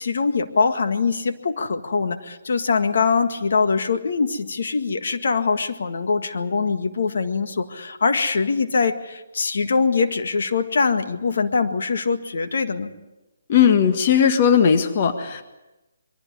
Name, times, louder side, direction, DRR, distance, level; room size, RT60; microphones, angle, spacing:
voice 1, 0.0-12.9, left 4 dB, 65° left, 7 dB, 1.8 m, -23 dB
voice 2, 13.5-15.4, left 7 dB, 40° left, 7 dB, 1.5 m, -17 dB
22.5 x 14.5 x 9.9 m, 1.0 s
hypercardioid pair, 160°, 0 cm